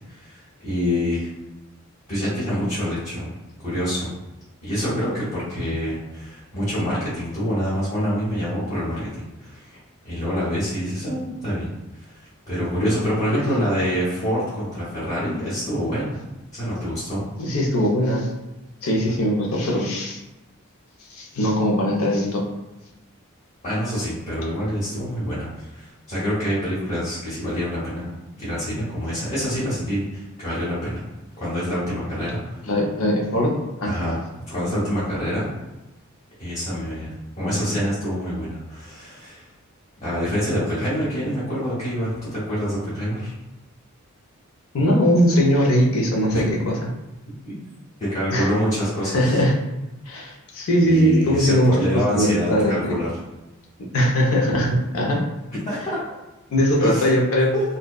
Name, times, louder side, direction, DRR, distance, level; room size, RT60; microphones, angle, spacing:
voice 1, 0.1-1.3 2.1-3.3 3.6-4.1 4.6-9.8 10.0-11.7 12.1-12.2 12.5-16.2 16.5-17.2 23.6-28.1 28.4-31.0 31.4-32.6 33.8-34.2 34.5-35.5 36.4-39.5 40.0-43.3 46.3-46.4 47.4-47.5 48.0-49.4 50.9-53.1 54.5-54.6 55.6-56.0 56.8-57.1 57.5-57.6, equal, 30° left, -12 dB, 0.8 m, -26 dB
voice 2, 17.4-18.3 18.8-20.2 21.1-22.4 32.7-33.9 44.7-46.8 48.3-48.5 49.1-49.6 50.1-52.9 53.9-55.2 56.5-57.5, equal, 70° left, -1 dB, 0.5 m, -20 dB
2.6 x 2.1 x 2.2 m, 1.0 s
head